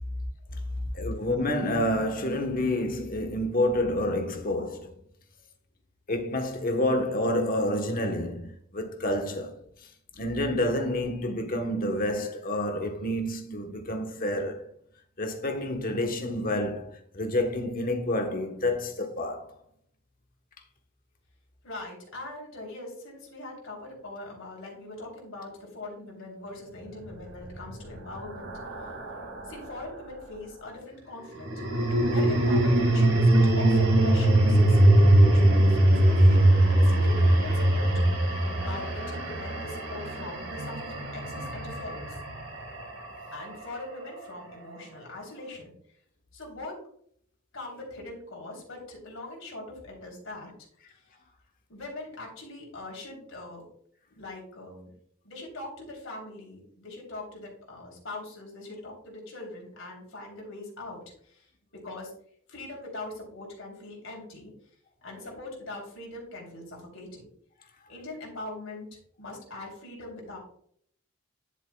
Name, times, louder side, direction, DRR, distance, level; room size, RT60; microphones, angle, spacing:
voice 1, 0.7-4.9 6.1-9.5 10.2-14.7 15.2-19.5 65.2-65.3, left 1 dB, 40° left, 1.2 m, -28 dB
voice 2, 21.6-28.5 29.4-31.5 32.1-37.9 38.6-42.2 43.3-45.7 46.3-46.8 47.5-50.5 51.7-53.6 54.1-54.9 55.2-61.5 61.7-62.1 62.5-64.5 65.0-67.2 67.9-70.4, left 2 dB, 65° left, 3.5 m, -41 dB
sound 1, 27.2-29.7 31.3-43.6, right 1 dB, 85° right, 2.2 m, -22 dB
10.5 x 7.3 x 2.3 m
head